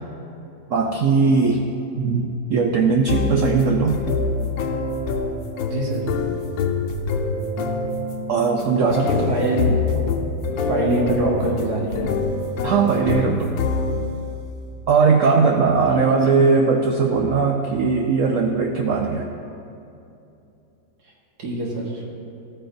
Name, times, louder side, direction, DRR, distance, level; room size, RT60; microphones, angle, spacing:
voice 1, 0.7-1.7 2.0-4.0 8.3-9.3 9.9-10.0 12.6-13.6 14.9-19.3, right 5 dB, 75° right, 2 dB, 0.7 m, -19 dB
sound 1, 3.1-14.2, left 3 dB, 90° left, 1.4 m, -25 dB
voice 2, 5.7-6.0 8.8-9.8 10.5-12.1 15.9-16.0 21.4-22.0, right 1 dB, 60° right, -3 dB, 2.0 m, -24 dB
14.0 x 9.0 x 2.6 m, 2.7 s
omnidirectional pair, 2.0 m